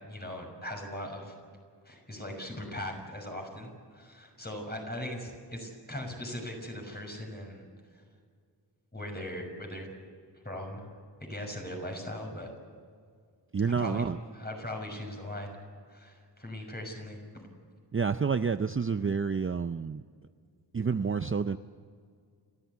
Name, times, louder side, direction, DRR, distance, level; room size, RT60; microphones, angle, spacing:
voice 1, 0.1-1.3 1.8-7.7 7.9-8.0 8.9-9.9 10.4-10.9 11.2-12.5 13.6-14.0 14.3-15.6 15.9-17.4, left 1 dB, 20° left, 2 dB, 6.1 m, -39 dB
voice 2, 13.5-14.2 17.9-20.0 20.7-21.6, right 5 dB, 30° right, 10 dB, 0.5 m, -29 dB
30.0 x 14.0 x 8.2 m, 2.1 s
wide cardioid pair, 105°, 43 cm